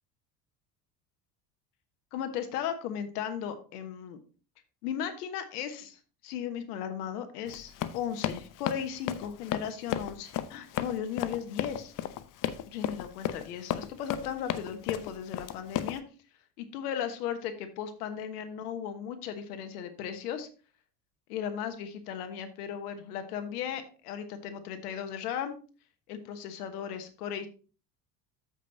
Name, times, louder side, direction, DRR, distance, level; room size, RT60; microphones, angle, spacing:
voice 1, 2.1-4.2 4.8-11.9 12.6-16.0 16.6-20.5 21.3-25.6 26.1-27.5, left 8 dB, 70° left, 8 dB, 1.4 m, -36 dB
Run, 7.5-16.0, left 11 dB, 40° left, 0.7 m, -34 dB
13.5 x 5.4 x 2.8 m, 0.36 s
figure-of-eight pair, 65°, 48 cm